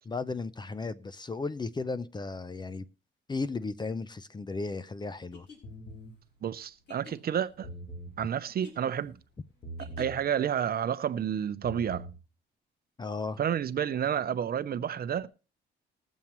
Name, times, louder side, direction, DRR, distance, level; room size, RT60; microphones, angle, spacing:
voice 1, 0.0-2.8 3.3-5.5 13.0-13.4, left 3 dB, 20° left, 0.6 m, -35 dB
sound 1, 5.3-10.4, left 4 dB, 60° left, 5.0 m, -52 dB
sound 2, 5.6-6.1 7.5-8.2 9.6-10.2 11.5-12.2, right 1 dB, 40° left, 4.5 m, -42 dB
voice 2, 6.4-7.7 8.2-9.1 9.8-12.1 13.4-15.3, right 9 dB, 50° right, 0.7 m, -30 dB
21.0 x 7.3 x 3.1 m
cardioid pair, 90°, 20 cm